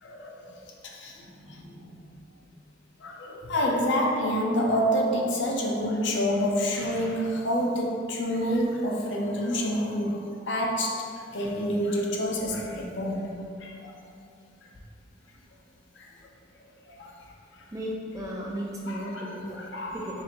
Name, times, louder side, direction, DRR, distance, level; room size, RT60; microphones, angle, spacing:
voice 1, 0.0-0.6 0.8-1.9 3.0-13.9 16.0-16.1 16.9-17.2 17.6-17.7 18.9-20.0, equal, 60° left, 0 dB, 0.5 m, -28 dB
voice 2, 17.7-19.7 19.9-20.2, equal, 15° right, -3 dB, 0.4 m, -35 dB
5.3 x 2.5 x 2.9 m, 2.4 s
head